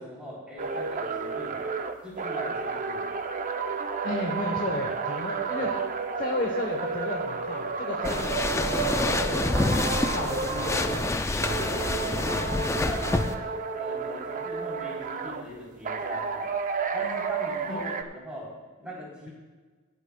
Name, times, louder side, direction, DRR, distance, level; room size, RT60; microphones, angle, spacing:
voice 1, 0.0-1.6 2.0-3.1 5.6-5.7 11.6-13.4 13.8-16.5 16.9-18.5 18.8-19.3, equal, 5° right, -6 dB, 3.5 m, -40 dB
sound 1, 0.6-11.1 11.4-15.4 15.8-18.0, right 5 dB, 35° right, 0.6 m, -31 dB
voice 2, 4.0-5.7 6.1-9.5 9.9-11.1 17.7-17.9, left 1 dB, 40° left, 1 dB, 1.0 m, -33 dB
sound 2, 8.0-13.4, left 2 dB, 15° left, 0.4 m, -27 dB
23.5 x 8.1 x 2.3 m, 1.4 s
head